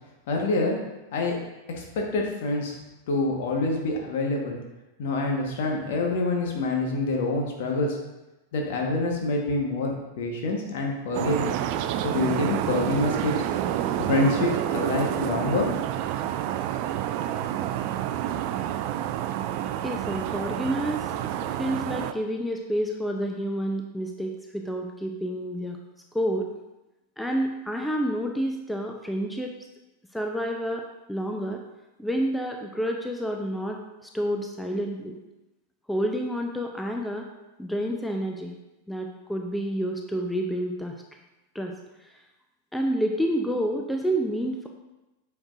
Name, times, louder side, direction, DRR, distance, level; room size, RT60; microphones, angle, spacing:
voice 1, 0.3-0.8 1.1-1.4 1.8-2.8 3.1-4.6 5.0-8.0 8.5-11.5 12.0-13.3 14.0-15.7, left 2 dB, 55° left, 0 dB, 1.4 m, -26 dB
sound 1, 11.1-22.1, right 11 dB, 45° right, 0.4 m, -29 dB
voice 2, 19.8-21.1 21.4-25.8 26.1-26.5 27.2-29.6 30.1-31.6 32.0-35.2 35.9-37.3 37.6-38.6 38.9-41.0 41.5-42.2 42.7-44.7, equal, 5° left, 2 dB, 0.6 m, -29 dB
8.7 x 6.0 x 2.6 m, 1.0 s
figure-of-eight pair, 90°, 0 cm